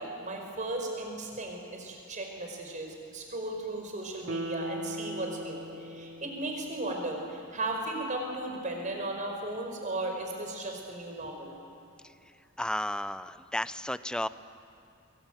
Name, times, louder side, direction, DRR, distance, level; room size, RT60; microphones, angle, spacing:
voice 1, 0.0-11.6, right 2 dB, 40° right, 2 dB, 5.0 m, -36 dB
Guitar, 4.2-7.5 7.9-8.0, right 1 dB, 70° right, 1.0 m, -40 dB
voice 2, 12.6-14.3, left 1 dB, 5° left, 14 dB, 0.5 m, -33 dB
23.0 x 22.5 x 9.1 m, 2.4 s
head